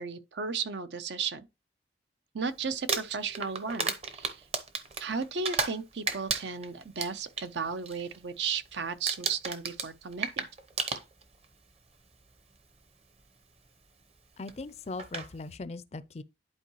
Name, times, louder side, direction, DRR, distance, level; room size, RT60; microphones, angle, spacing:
voice 1, 0.0-1.5 2.3-4.4 5.0-10.5, right 5 dB, 75° right, 0.7 m, -35 dB
Crumpling crinkling, 2.7-5.8 6.1-7.5 7.8-8.2 8.4-8.7 9.1-11.4 12.4-12.5 14.5-14.6 15.0-15.3, right 4 dB, 35° right, 0.8 m, -33 dB
voice 2, 14.4-16.2, left 3 dB, 35° left, 0.4 m, -39 dB
11.0 x 4.5 x 3.0 m
head